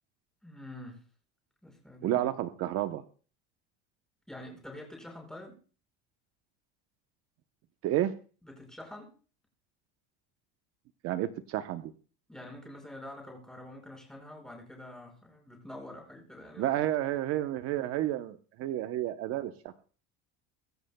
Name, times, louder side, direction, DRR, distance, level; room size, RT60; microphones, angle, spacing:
voice 1, 0.4-1.0 1.6-2.3 4.3-5.6 8.4-9.1 12.3-16.8, left 1 dB, ahead, 0 dB, 5.1 m, -46 dB
voice 2, 2.0-3.0 7.8-8.1 11.0-11.9 16.6-19.5, right 13 dB, 50° right, 10 dB, 0.8 m, -30 dB
23.0 x 13.0 x 2.2 m, 0.39 s
cardioid pair, 140°, 29 cm